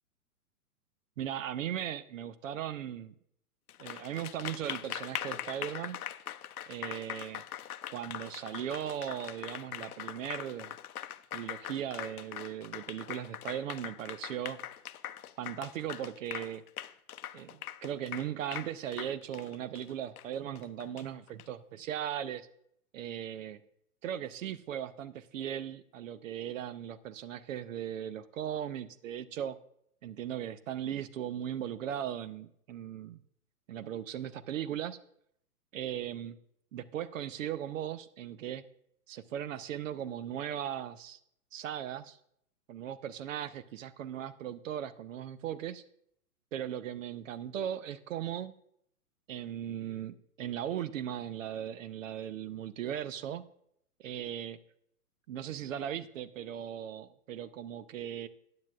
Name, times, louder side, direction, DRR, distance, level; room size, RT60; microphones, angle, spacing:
voice 1, 1.2-3.1 3.8-6.0 6.7-7.4 7.9-10.7 11.3-14.6 15.4-16.6 17.3-22.5 22.9-23.6 24.0-29.6 30.0-33.2 33.7-35.0 35.7-36.4 36.7-38.6 39.1-41.2 41.5-42.2 42.7-45.8 46.5-48.5 49.3-53.4 54.0-54.6 55.3-58.3, right 10 dB, 60° right, 14 dB, 0.6 m, -38 dB
Applause, 3.7-21.4, left 11 dB, 70° left, 0.6 m, -42 dB
14.5 x 9.5 x 2.4 m, 0.71 s
hypercardioid pair, 115°, 45 cm